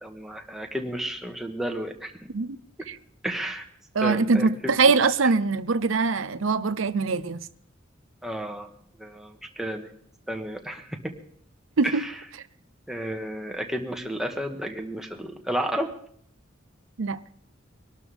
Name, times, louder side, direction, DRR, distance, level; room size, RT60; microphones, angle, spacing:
voice 1, 0.0-2.1 3.2-3.7 4.0-4.7 8.2-8.7 9.0-9.9 10.3-11.1 11.9-12.1 12.9-15.9, right 1 dB, ahead, 1.6 m, -32 dB
voice 2, 3.9-7.5 11.8-12.1 17.0-17.2, right 4 dB, 90° right, 0.7 m, -23 dB
23.5 x 12.0 x 3.6 m
head